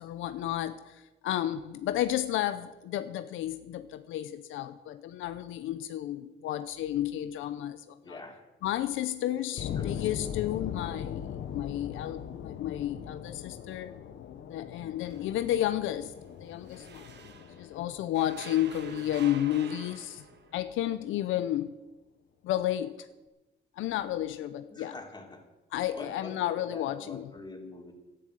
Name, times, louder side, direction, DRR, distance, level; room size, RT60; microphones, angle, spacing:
voice 1, 0.0-8.2 8.6-13.9 14.5-16.1 16.4-17.1 17.6-20.2 20.5-21.7 22.4-22.9 23.8-24.9 25.7-27.3, left 12 dB, 85° left, 0.7 m, -32 dB
voice 2, 8.0-8.5 9.3-10.1 24.7-25.4 25.9-27.9, left 2 dB, 20° left, 3.2 m, -45 dB
sound 1, 9.6-20.3, left 8 dB, 70° left, 1.0 m, -40 dB
sound 2, 15.0-17.8 18.1-20.6, right 6 dB, 60° right, 1.4 m, -48 dB
11.5 x 10.5 x 7.9 m
cardioid pair, 90°, 20 cm